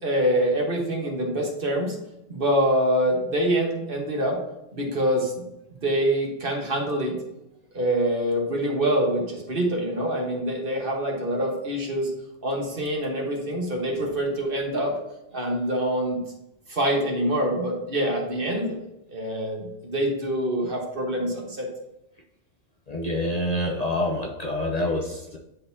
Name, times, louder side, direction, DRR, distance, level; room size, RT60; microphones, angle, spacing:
voice 1, 0.0-2.0 2.3-4.4 4.7-5.3 5.8-7.2 7.7-12.1 12.4-15.0 15.3-16.2 16.7-18.8 19.1-21.7, right 1 dB, 50° right, 0 dB, 1.5 m, -25 dB
voice 2, 22.9-25.4, left 1 dB, 40° left, -1 dB, 0.7 m, -27 dB
10.0 x 3.9 x 2.7 m, 0.88 s
omnidirectional pair, 1.2 m